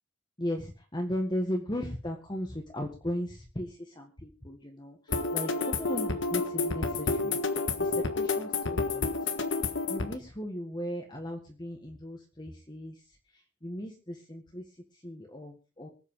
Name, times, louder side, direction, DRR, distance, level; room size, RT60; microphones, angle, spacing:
voice 1, 0.4-7.4 7.8-9.1 9.9-13.0 13.6-14.6 15.0-15.9, equal, 20° left, 2 dB, 1.7 m, -36 dB
sound 1, 5.1-10.2, left 3 dB, 70° left, 1.4 m, -30 dB
24.0 x 8.2 x 3.8 m, 0.35 s
head